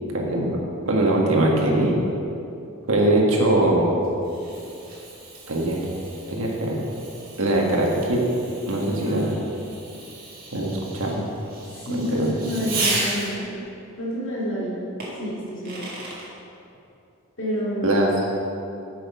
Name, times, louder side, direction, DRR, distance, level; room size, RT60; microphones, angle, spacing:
voice 1, 0.1-0.6 0.8-1.9 2.9-3.9 5.5-5.8 6.3-6.8 7.4-8.2 8.7-9.3 10.5-11.3 11.9-12.3 17.8-18.1, right 1 dB, 75° right, -1 dB, 1.6 m, -21 dB
Fireworks, 3.6-13.6 15.0-16.3, right 2 dB, 45° right, 2.1 m, -34 dB
voice 2, 9.0-9.4 11.7-13.5 14.0-14.7 15.2-15.8 17.4-18.0, equal, 65° left, -7 dB, 2.2 m, -28 dB
9.1 x 6.3 x 5.7 m, 2.7 s
head